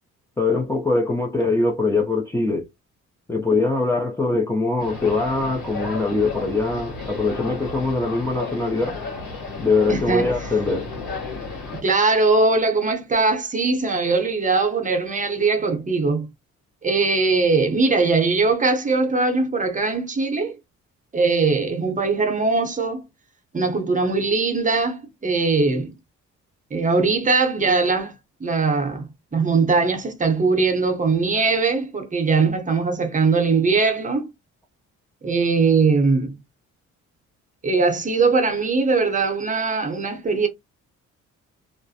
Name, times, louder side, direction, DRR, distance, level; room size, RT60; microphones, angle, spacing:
voice 1, 0.4-2.7 3.3-9.0 9.6-10.9, left 3 dB, 10° left, 0.5 m, -22 dB
sound 1, 4.8-11.8, left 3 dB, 85° left, 1.4 m, -33 dB
voice 2, 9.9-10.3 11.8-16.3 16.8-20.5 21.1-23.1 23.5-25.9 26.7-29.1 29.3-34.3 35.2-36.4 37.6-40.5, right 4 dB, 25° right, 0.8 m, -21 dB
2.4 x 2.1 x 2.6 m
cardioid pair, 90°, 30 cm